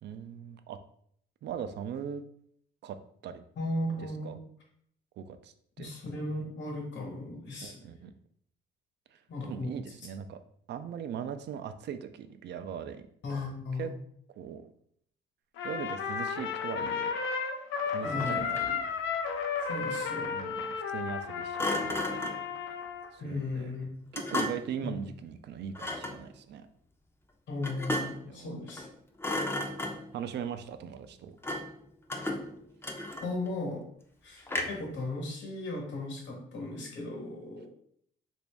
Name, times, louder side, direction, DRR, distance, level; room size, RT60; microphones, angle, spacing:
voice 1, 0.0-0.8 1.4-2.2 2.8-3.0 3.2-3.4 4.2-4.4 5.2-5.9 7.6-8.1 9.1-10.4 10.7-13.0 13.3-13.4 13.8-13.9 14.4-14.7 15.6-17.1 17.9-18.8 20.3-22.3 23.1-23.7 24.1-26.7 28.2-28.5 30.1-31.4, right 8 dB, 60° right, 10 dB, 0.4 m, -40 dB
voice 2, 3.6-4.4 5.8-7.9 9.3-9.7 13.2-13.9 18.0-18.5 19.7-20.3 23.2-23.9 24.8-24.9 27.5-28.9 33.2-33.8 34.2-37.7, left 2 dB, 65° left, 0 dB, 1.2 m, -36 dB
Trumpet, 15.6-23.1, left 6 dB, 90° left, 0.5 m, -33 dB
Thump thud, 18.0-18.8 21.6-22.5 24.1-24.8 25.7-26.2 27.6-28.3 28.7-28.9 29.2-30.2 31.4-31.8 32.1-33.5 34.5-34.9, left 1 dB, 10° left, 0.5 m, -34 dB
3.0 x 2.6 x 3.4 m, 0.66 s
cardioid pair, 90°, 20 cm